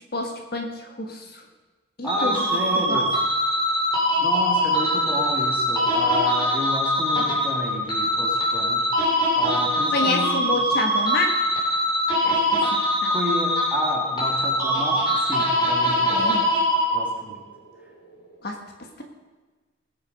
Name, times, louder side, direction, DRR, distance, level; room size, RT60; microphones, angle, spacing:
voice 1, 0.1-1.4 2.0-2.4 2.9-3.0 9.9-11.4 12.2-12.6 13.0-13.1 16.1-16.4 18.4-18.6, left 2 dB, 50° left, 3 dB, 1.5 m, -28 dB
voice 2, 2.0-3.1 4.2-8.9 9.1-10.3 10.5-10.7 13.1-16.3 16.9-17.4, left 1 dB, 10° right, -2 dB, 2.3 m, -31 dB
sound 1, 2.1-17.3, equal, 20° left, 3.0 m, -23 dB
20.0 x 6.9 x 5.3 m, 1.3 s
head